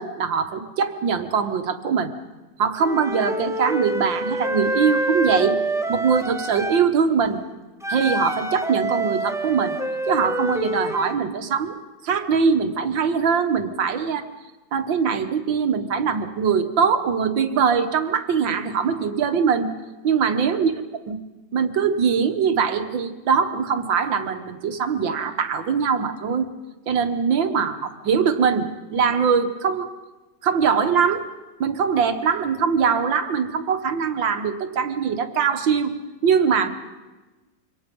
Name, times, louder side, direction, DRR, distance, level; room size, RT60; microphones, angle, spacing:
voice 1, 0.0-2.1 2.6-5.6 5.9-7.4 7.9-9.8 10.1-11.8 12.0-14.3 14.7-19.7 20.0-20.7 21.1-21.2 21.5-26.5 26.9-29.9 30.4-31.2 31.6-36.0 36.2-36.7, right 6 dB, 90° right, 7 dB, 2.1 m, -22 dB
Wind instrument woodwind instrument, 2.8-6.9 7.8-11.2, right 1 dB, ahead, 0.7 m, -26 dB
26.0 x 24.5 x 5.4 m, 1.2 s
omnidirectional pair, 2.0 m